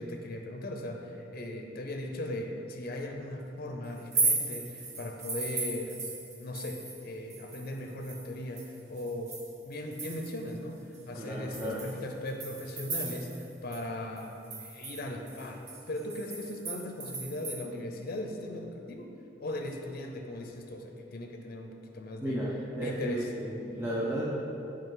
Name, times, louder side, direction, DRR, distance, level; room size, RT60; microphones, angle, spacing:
voice 1, 0.0-6.0 6.4-9.4 9.6-19.1 19.4-22.4 22.8-23.3, left 1 dB, 50° left, 3 dB, 0.6 m, -38 dB
sound 1, 4.0-7.0 7.3-10.5 10.9-11.0 11.5-13.5 13.7-13.8 14.2-17.6, right 3 dB, 40° right, 1.0 m, -36 dB
voice 2, 11.1-11.8 22.2-24.2, equal, 15° right, -7 dB, 0.7 m, -33 dB
8.1 x 4.9 x 3.8 m, 2.9 s
head